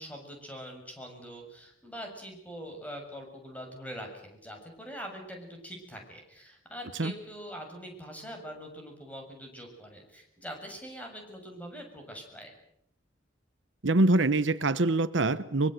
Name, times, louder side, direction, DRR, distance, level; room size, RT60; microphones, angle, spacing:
voice 1, 0.0-12.5, equal, 10° left, 2 dB, 7.0 m, -43 dB
voice 2, 13.8-15.7, right 2 dB, 75° right, 13 dB, 1.1 m, -24 dB
24.5 x 23.5 x 7.9 m, 0.72 s
head